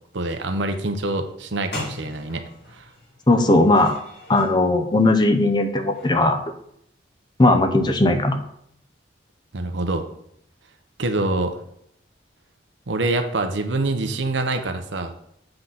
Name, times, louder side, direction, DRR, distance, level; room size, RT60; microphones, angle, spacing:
voice 1, 0.1-2.4 2.7-2.8 9.5-10.0 11.0-11.6 12.9-15.1, right 2 dB, 75° right, 7 dB, 0.8 m, -25 dB
sound 1, 1.4-1.5 1.7-4.5 5.9-6.2, left 2 dB, 65° left, 2.7 m, -39 dB
voice 2, 3.3-4.0 4.3-6.4 7.4-8.4, left 2 dB, 25° left, 6 dB, 0.6 m, -18 dB
7.8 x 3.9 x 5.8 m, 0.72 s
head